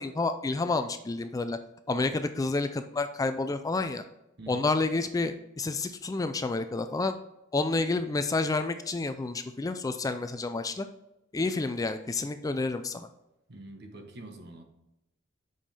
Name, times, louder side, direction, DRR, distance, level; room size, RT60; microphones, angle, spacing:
voice 1, 0.0-1.6 1.9-4.0 4.5-7.2 7.5-10.9 11.3-13.1, left 3 dB, 15° left, 9 dB, 0.3 m, -29 dB
voice 2, 4.4-4.7 13.5-14.6, right 2 dB, 55° right, 5 dB, 1.1 m, -45 dB
7.5 x 5.4 x 3.3 m, 0.88 s
head